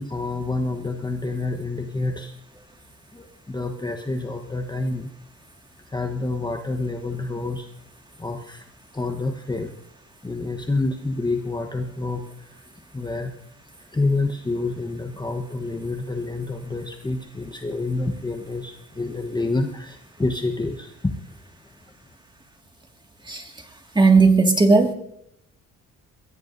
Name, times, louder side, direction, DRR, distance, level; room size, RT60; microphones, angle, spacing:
voice 1, 0.0-2.3 3.1-5.1 5.9-7.7 8.2-8.6 8.9-9.7 10.2-12.6 12.9-13.3 13.9-21.1, left 2 dB, 15° left, 4 dB, 1.2 m, -28 dB
voice 2, 24.0-24.9, right 4 dB, 15° right, 3 dB, 2.1 m, -16 dB
22.0 x 16.0 x 2.7 m, 0.77 s
cardioid pair, 90°, 30 cm